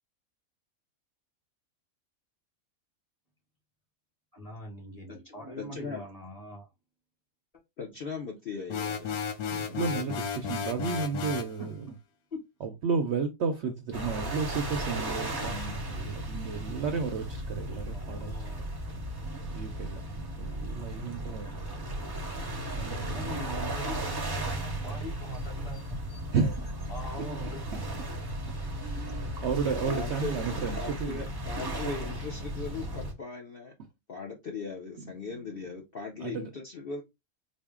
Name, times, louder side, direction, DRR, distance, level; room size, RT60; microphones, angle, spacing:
voice 1, 4.3-6.7 11.6-11.7 12.3-12.4 17.9-18.6 22.5-26.0 26.9-27.6, left 1 dB, 25° left, 1.4 m, -41 dB
voice 2, 5.6-6.0 7.8-9.2 9.6-10.1 29.1-29.3 29.8-33.7 34.1-37.0, left 4 dB, 50° left, 0.7 m, -39 dB
sound 1, 8.7-11.6, left 6 dB, 85° left, 1.2 m, -33 dB
voice 3, 9.5-11.8 12.6-18.3 19.5-20.0 20.4-21.6 22.7-23.5 26.3-26.6 28.8-31.2 35.2-35.3 36.2-36.5, right 5 dB, 65° right, 0.7 m, -32 dB
sound 2, 13.9-33.1, right 1 dB, 25° right, 0.5 m, -35 dB
4.3 x 2.1 x 3.5 m
omnidirectional pair, 1.5 m